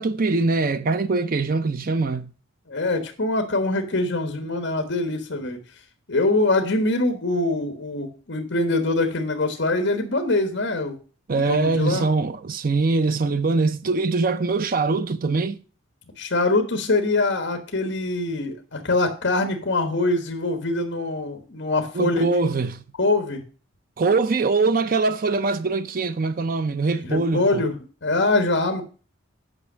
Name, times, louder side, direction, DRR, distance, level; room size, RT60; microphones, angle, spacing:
voice 1, 0.0-2.3 11.3-15.6 21.9-22.8 24.0-27.6, right 3 dB, 45° right, 0.5 m, -22 dB
voice 2, 2.7-5.6 6.1-11.0 11.3-12.1 16.2-22.2 23.0-23.4 27.0-27.8 28.0-28.8, left 2 dB, 60° left, 1.3 m, -23 dB
8.8 x 5.4 x 6.1 m
head